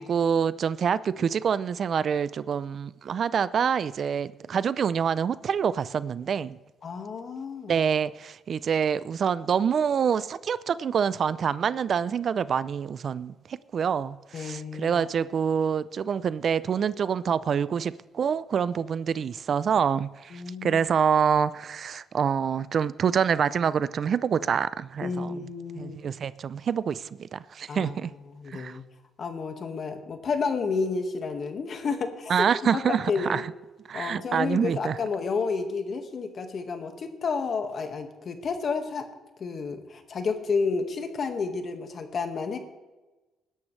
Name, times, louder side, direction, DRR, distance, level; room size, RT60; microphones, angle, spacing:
voice 1, 0.0-6.6 7.7-25.3 25.8-28.1 28.5-28.8 32.3-33.4 33.9-35.0, right 7 dB, 55° right, 0.5 m, -26 dB
voice 2, 6.8-7.7 14.3-15.0 20.3-20.8 25.0-26.0 27.7-28.0 28.3-28.9 29.2-32.5 32.7-33.4 33.9-39.1 39.4-42.6, left 4 dB, 50° left, 1.7 m, -31 dB
20.0 x 11.0 x 3.3 m
cardioid pair, 90°, 0 cm